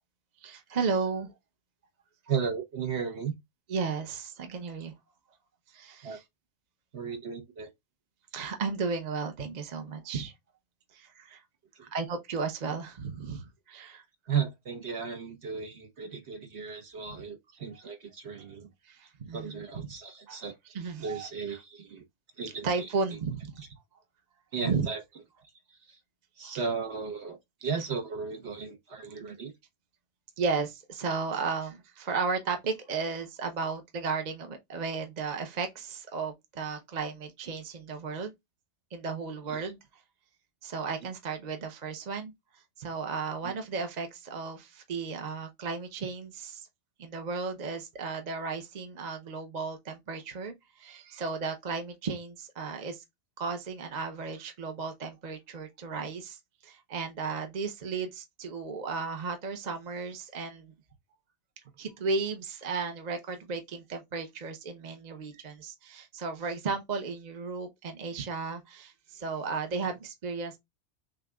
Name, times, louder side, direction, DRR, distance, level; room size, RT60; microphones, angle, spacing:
voice 1, 0.4-1.3 3.7-4.9 5.7-6.2 8.3-10.3 10.9-11.4 11.8-14.0 17.7-17.8 18.8-19.9 20.3-20.4 20.7-21.6 22.6-23.6 24.6-24.9 26.4-26.6 30.4-38.3 38.9-39.8 40.6-46.7 47.0-53.0 53.4-60.7 61.8-70.6, right 4 dB, 40° right, 0.8 m, -34 dB
voice 2, 2.3-3.3 6.0-6.2 6.9-7.7 14.3-18.6 19.3-20.5 21.0-22.0 22.4-22.7 24.5-25.0 26.4-27.4 27.6-29.5 39.5-39.6 43.4-43.5, right 6 dB, 60° right, 1.5 m, -35 dB
6.5 x 2.5 x 2.3 m
omnidirectional pair, 1.2 m